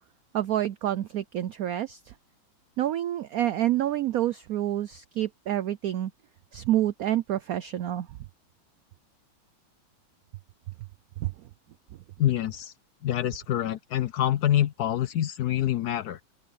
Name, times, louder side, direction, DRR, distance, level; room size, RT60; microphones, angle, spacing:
voice 1, 0.3-2.0 2.8-6.1 6.5-8.1 11.2-11.3, right 13 dB, 90° right, 0.7 m, -28 dB
voice 2, 12.2-12.7 13.0-16.2, left 12 dB, 65° left, 1.0 m, -26 dB
omnidirectional pair, 2.2 m